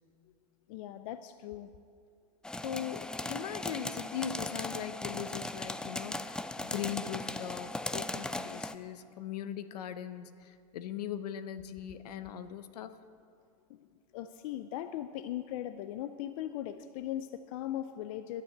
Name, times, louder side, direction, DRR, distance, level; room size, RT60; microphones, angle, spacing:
voice 1, 0.7-1.7 13.7-13.9 14.1-18.4, left 12 dB, 60° left, 10 dB, 0.6 m, -39 dB
sound 1, 2.4-8.7, left 2 dB, 5° left, 0.3 m, -38 dB
voice 2, 2.6-13.0, left 9 dB, 80° left, 11 dB, 0.9 m, -40 dB
11.5 x 9.6 x 8.0 m, 2.2 s
supercardioid pair, 125°, 20 cm